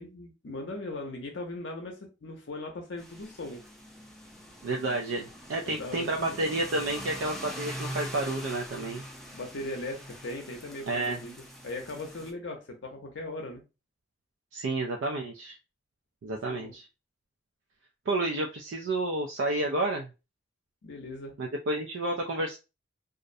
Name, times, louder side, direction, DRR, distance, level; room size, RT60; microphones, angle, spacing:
voice 1, 0.0-3.6 5.7-6.4 9.3-11.3 11.6-13.6 16.3-16.7 20.8-21.4, left 2 dB, 70° left, 0.6 m, -39 dB
sound 1, 3.0-12.3, equal, ahead, 0.4 m, -43 dB
voice 2, 4.6-9.0 10.9-11.2 14.5-15.6 16.2-16.9 18.1-20.1 21.4-22.6, right 2 dB, 80° right, 0.4 m, -30 dB
2.4 x 2.0 x 2.5 m
head